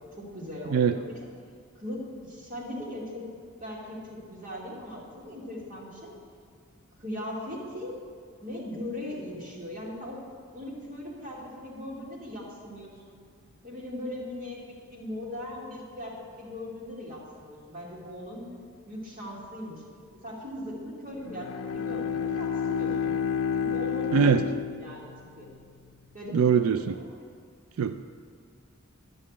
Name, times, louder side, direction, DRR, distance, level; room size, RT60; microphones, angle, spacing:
voice 1, 0.1-1.3 1.8-3.3 3.6-6.1 7.0-8.0 8.4-10.2 10.5-13.1 13.6-18.5 18.9-19.8 20.2-23.1 23.5-24.5 24.8-25.1 25.4-25.5 26.1-27.1, left 1 dB, 40° right, -3 dB, 2.4 m, -39 dB
Bowed string instrument, 21.2-25.6, left 7 dB, 85° left, 0.5 m, -30 dB
voice 2, 24.1-24.4 26.3-27.0 27.8-28.0, right 7 dB, 90° right, 10 dB, 0.4 m, -22 dB
12.0 x 5.5 x 8.5 m, 2.1 s
head